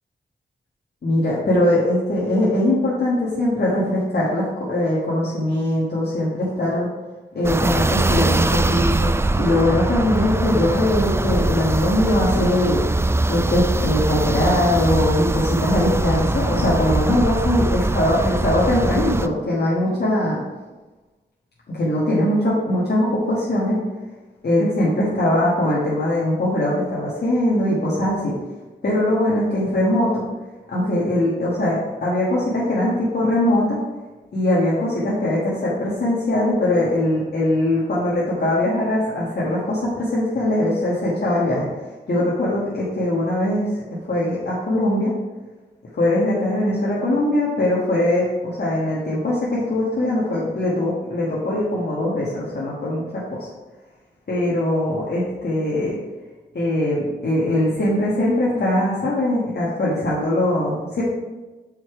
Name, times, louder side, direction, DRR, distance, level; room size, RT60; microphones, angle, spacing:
voice 1, 1.0-6.9 7.3-9.1 9.4-12.8 13.3-20.4 21.7-23.8 24.4-28.3 28.8-30.2 30.7-33.8 34.3-41.7 42.1-43.7 44.1-45.1 45.9-53.5 54.3-55.9 56.5-61.0, left 1 dB, 70° left, -7 dB, 1.5 m, -21 dB
sound 1, 7.4-19.3, right 2 dB, 15° right, 0.4 m, -22 dB
5.7 x 4.9 x 4.7 m, 1.2 s
cardioid pair, 50°, 18 cm